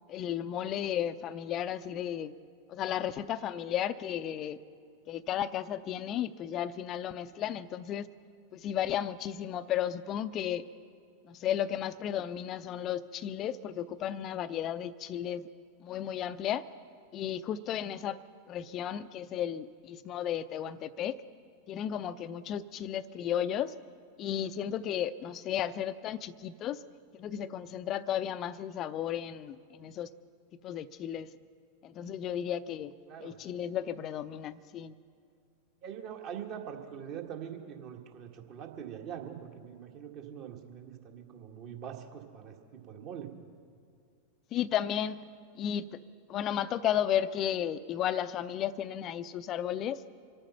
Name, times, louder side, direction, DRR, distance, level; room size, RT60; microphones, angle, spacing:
voice 1, 0.1-2.3 2.7-4.6 5.1-8.1 8.5-10.7 11.3-15.5 15.8-16.7 17.1-18.2 18.5-21.2 21.7-23.7 24.2-26.8 27.2-30.1 30.6-31.3 31.8-32.9 33.2-34.9 44.5-45.3 45.5-46.0 46.3-50.0, left 10 dB, 35° left, 14 dB, 0.6 m, -34 dB
voice 2, 33.1-33.7 35.8-43.3, right 8 dB, 40° right, 3 dB, 1.8 m, -43 dB
26.0 x 8.9 x 5.8 m, 2.3 s
figure-of-eight pair, 90°, 0 cm